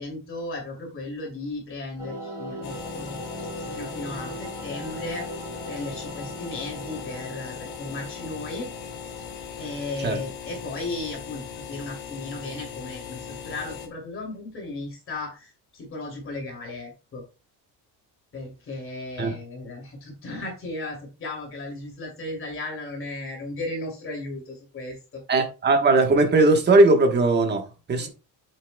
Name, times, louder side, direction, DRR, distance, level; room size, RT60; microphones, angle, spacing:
voice 1, 0.0-3.2 3.6-5.3 5.6-8.7 9.6-17.2 18.3-25.2 28.0-28.1, left 2 dB, 30° left, 2.7 m, -35 dB
sound 1, 2.0-9.9, equal, 5° right, 4.2 m, -39 dB
sound 2, 2.6-13.9, left 7 dB, 65° left, 2.0 m, -39 dB
voice 2, 25.3-28.1, right 2 dB, 25° right, 1.2 m, -19 dB
8.1 x 7.4 x 2.2 m
cardioid pair, 180°, 42 cm